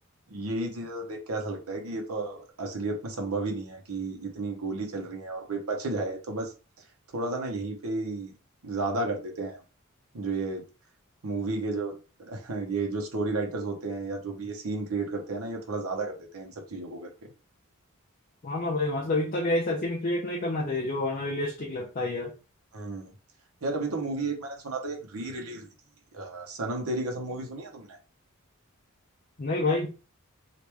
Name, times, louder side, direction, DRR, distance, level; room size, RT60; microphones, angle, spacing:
voice 1, 0.3-6.5 7.1-8.3 8.6-9.6 10.1-10.6 11.2-17.3 22.7-23.1 23.6-25.7 26.1-28.0, right 2 dB, 85° right, 0.8 m, -32 dB
voice 2, 18.4-22.3 29.4-29.9, left 2 dB, 40° left, 0.5 m, -28 dB
3.0 x 2.5 x 3.3 m
head